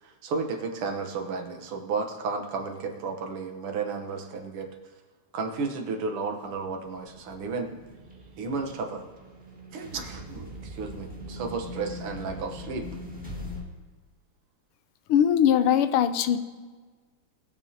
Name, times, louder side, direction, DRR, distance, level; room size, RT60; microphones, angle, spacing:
voice 1, 0.0-4.7 5.3-7.7 8.4-9.0 9.7-12.9, right 4 dB, 85° right, 4 dB, 2.0 m, -33 dB
sound 1, 6.6-13.6, left 1 dB, 5° right, 1.5 m, -41 dB
voice 2, 15.1-16.4, left 9 dB, 80° left, 11 dB, 1.5 m, -21 dB
20.0 x 7.2 x 2.8 m, 1.4 s
omnidirectional pair, 2.4 m